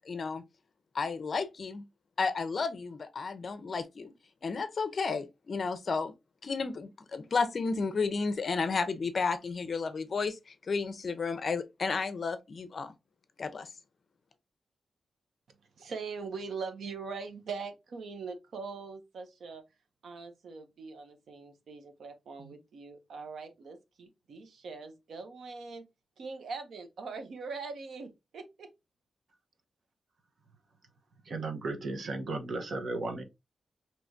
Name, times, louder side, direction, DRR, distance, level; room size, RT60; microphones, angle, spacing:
voice 1, 0.1-0.4 0.9-1.8 2.2-4.1 4.4-6.1 6.4-12.9 13.4-13.7, left 4 dB, 45° left, 0.6 m, -32 dB
voice 2, 15.5-19.6 20.0-25.9 26.2-28.7, right 4 dB, 75° right, 0.9 m, -42 dB
voice 3, 31.3-33.2, right 3 dB, 50° right, 1.0 m, -35 dB
4.6 x 3.0 x 2.6 m
wide cardioid pair, 165°, 0 cm